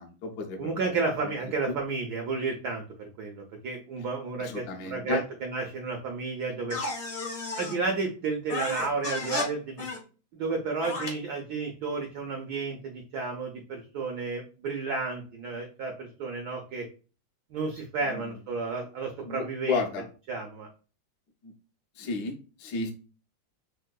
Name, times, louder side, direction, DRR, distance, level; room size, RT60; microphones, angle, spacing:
voice 1, 0.0-0.9 1.2-1.3 1.7-1.8 4.4-5.2 18.1-18.3 19.2-20.0 21.4-21.5 22.0-22.9, left 3 dB, 65° left, 1 dB, 1.1 m, -33 dB
voice 2, 0.6-6.8 7.6-9.9 10.3-16.8 17.5-19.8 20.3-20.7, right 4 dB, 80° right, 2 dB, 0.9 m, -32 dB
sound 1, 6.7-7.8 8.5-9.5 9.8-10.0 10.8-11.1, left 2 dB, 40° left, 0.8 m, -33 dB
3.6 x 2.6 x 2.2 m, 0.36 s
omnidirectional pair, 2.3 m